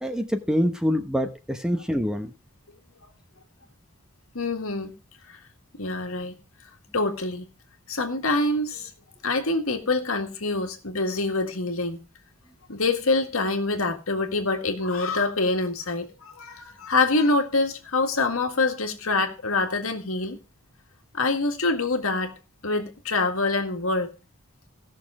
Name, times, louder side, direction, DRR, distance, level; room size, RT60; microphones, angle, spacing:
voice 1, 0.0-2.3, equal, 5° right, 1.0 m, -25 dB
voice 2, 4.4-4.9 5.8-6.4 6.9-7.4 7.9-8.9 9.2-12.0 12.7-16.1 16.4-20.4 21.1-22.3 22.6-24.1, left 3 dB, 75° left, 1.9 m, -25 dB
16.5 x 6.5 x 4.9 m
head